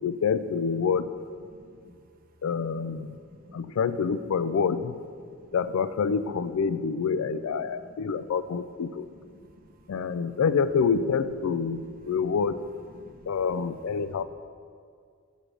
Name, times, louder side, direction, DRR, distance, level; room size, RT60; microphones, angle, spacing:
voice 1, 0.0-1.1 2.4-3.2 3.5-5.0 5.5-9.1 9.9-12.6 13.3-14.2, left 6 dB, 75° left, 14 dB, 0.4 m, -27 dB
voice 2, 3.5-3.8 11.8-12.1 12.9-13.3 14.2-14.3, equal, 45° right, 3 dB, 0.8 m, -51 dB
7.2 x 5.0 x 6.3 m, 2.2 s
head